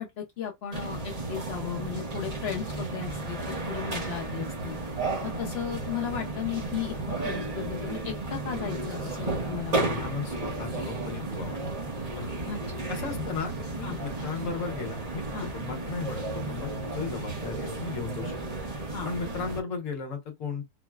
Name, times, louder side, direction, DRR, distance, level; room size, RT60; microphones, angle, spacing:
voice 1, 0.0-4.8 5.2-9.9 12.5-12.8 13.2-13.3 13.8-14.0 15.3-15.5 18.9-19.1, left 8 dB, 75° left, 0.5 m, -35 dB
sound 1, 0.7-19.6, right 2 dB, 35° right, 0.7 m, -33 dB
voice 2, 9.7-11.6 12.1-12.3 12.9-15.3 15.5-18.4 19.0-20.6, left 5 dB, 60° left, 1.1 m, -35 dB
3.8 x 2.0 x 2.2 m
omnidirectional pair, 1.7 m